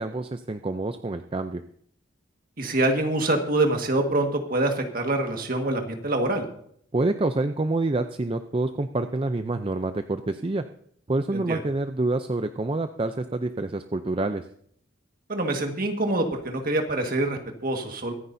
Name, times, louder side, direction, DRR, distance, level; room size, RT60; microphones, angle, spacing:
voice 1, 0.0-1.6 6.9-10.6 11.1-14.5, right 2 dB, 25° right, 9 dB, 0.5 m, -27 dB
voice 2, 2.6-6.4 11.3-11.6 15.3-18.1, right 2 dB, 45° right, 4 dB, 1.7 m, -25 dB
24.5 x 9.8 x 2.7 m, 0.64 s
head